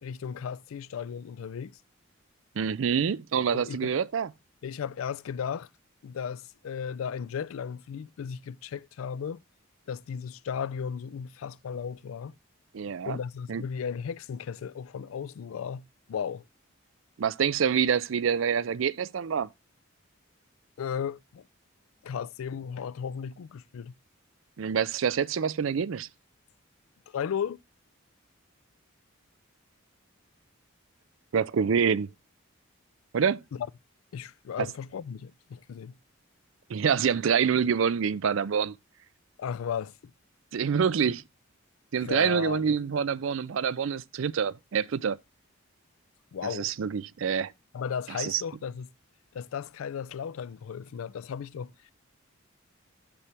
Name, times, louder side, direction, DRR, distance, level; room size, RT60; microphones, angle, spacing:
voice 1, 0.0-1.8 3.5-4.0 4.6-5.7 6.0-9.4 9.9-12.4 13.1-16.4 20.8-21.4 22.0-23.9 27.1-27.6 34.1-36.0 39.4-40.1 41.9-42.8 46.3-46.7 47.7-48.9 49.3-51.7, left 7 dB, 80° left, 0.4 m, -35 dB
voice 2, 2.6-4.3 12.7-13.2 13.5-13.6 17.2-19.5 24.6-26.1 31.3-32.1 33.1-33.4 36.7-38.8 40.5-41.2 41.9-45.2 46.5-47.5 48.2-48.4, right 7 dB, 65° right, 0.4 m, -26 dB
6.9 x 6.9 x 3.3 m
head